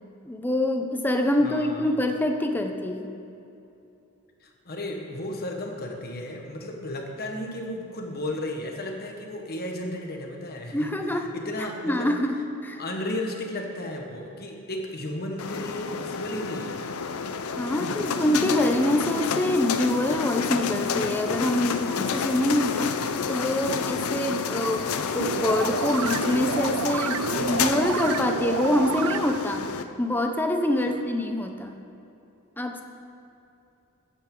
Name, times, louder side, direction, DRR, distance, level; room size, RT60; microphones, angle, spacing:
voice 1, 0.2-3.1 10.7-11.3 11.8-12.8 17.5-22.9 23.3-29.7 30.0-31.7 32.6-32.8, left 1 dB, 10° left, 4 dB, 0.7 m, -25 dB
voice 2, 1.4-1.9 4.4-11.0 11.2-12.2 12.8-16.8 17.7-18.0, left 1 dB, 45° left, 2 dB, 1.3 m, -34 dB
sound 1, 15.4-29.8, left 5 dB, 75° left, 0.6 m, -29 dB
sound 2, 25.2-29.6, right 8 dB, 90° right, 0.3 m, -30 dB
14.0 x 9.0 x 3.8 m, 2.8 s
head